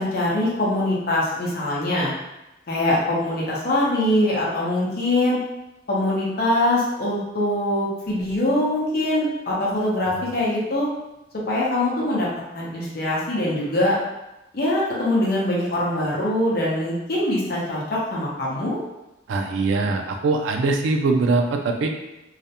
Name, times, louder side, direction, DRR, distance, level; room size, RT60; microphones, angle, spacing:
voice 1, 0.0-2.1 2.7-5.4 5.9-10.9 11.5-12.3 12.5-14.0 14.5-18.8, left 1 dB, 55° left, -5 dB, 0.6 m, -23 dB
voice 2, 19.3-21.9, right 3 dB, 85° right, 4 dB, 0.3 m, -22 dB
2.3 x 2.0 x 2.8 m, 0.95 s
head